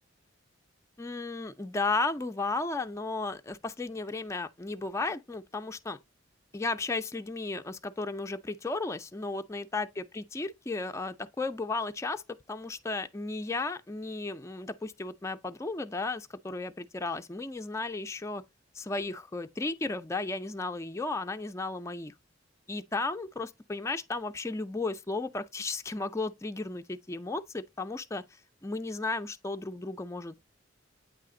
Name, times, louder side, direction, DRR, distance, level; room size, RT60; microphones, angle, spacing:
voice 1, 1.0-6.0 6.5-12.2 12.5-18.4 18.7-22.1 22.7-28.2 28.6-30.4, left 3 dB, 15° left, 0.3 m, -34 dB
8.4 x 3.3 x 3.7 m
head